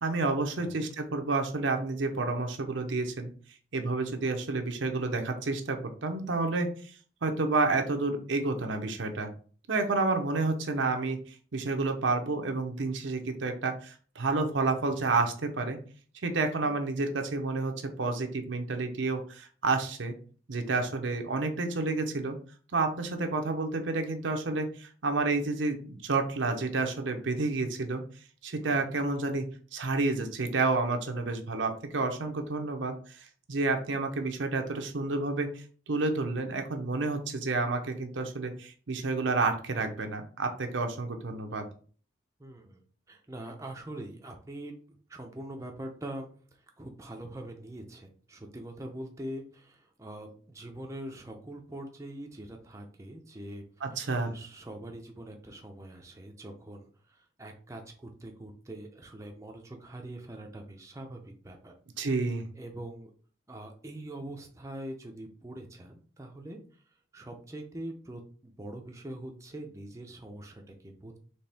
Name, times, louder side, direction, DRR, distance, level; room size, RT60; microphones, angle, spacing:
voice 1, 0.0-3.3 3.7-7.0 7.2-9.3 9.7-15.8 16.2-20.1 20.5-22.4 22.7-28.0 28.4-29.5 29.7-41.6 53.8-54.3 62.0-62.4, right 3 dB, 80° right, 5 dB, 0.7 m, -30 dB
voice 2, 28.6-28.9 42.4-42.8 43.1-44.7 45.1-53.7 53.9-62.1 62.5-63.1 63.5-66.8 67.1-71.2, right 1 dB, 15° right, 2 dB, 0.5 m, -43 dB
4.3 x 3.3 x 3.4 m, 0.43 s
head